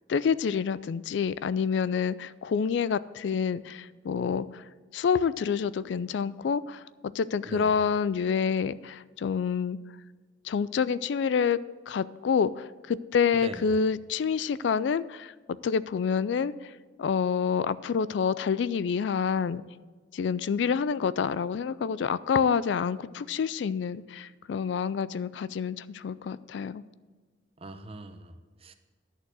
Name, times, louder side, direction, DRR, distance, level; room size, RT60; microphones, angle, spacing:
voice 1, 0.1-4.6 4.9-9.8 10.4-11.6 11.9-15.3 15.6-16.7 17.0-19.6 20.1-26.8, left 6 dB, 70° left, 17 dB, 0.3 m, -28 dB
voice 2, 7.4-7.8 13.3-13.7 27.6-28.7, right 2 dB, 30° right, 8 dB, 0.7 m, -41 dB
11.0 x 6.7 x 6.3 m, 1.4 s
head